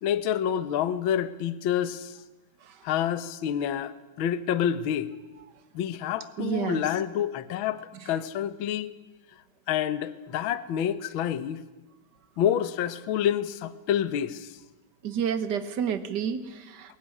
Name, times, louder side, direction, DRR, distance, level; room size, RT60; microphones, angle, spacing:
voice 1, 0.0-2.2 2.8-5.1 5.7-8.9 9.7-11.6 12.4-14.5, left 9 dB, 65° left, 13 dB, 1.3 m, -28 dB
voice 2, 6.4-6.9 8.0-8.1 15.0-17.0, right 8 dB, 65° right, 10 dB, 1.0 m, -30 dB
22.5 x 22.5 x 9.9 m, 1.1 s
omnidirectional pair, 3.7 m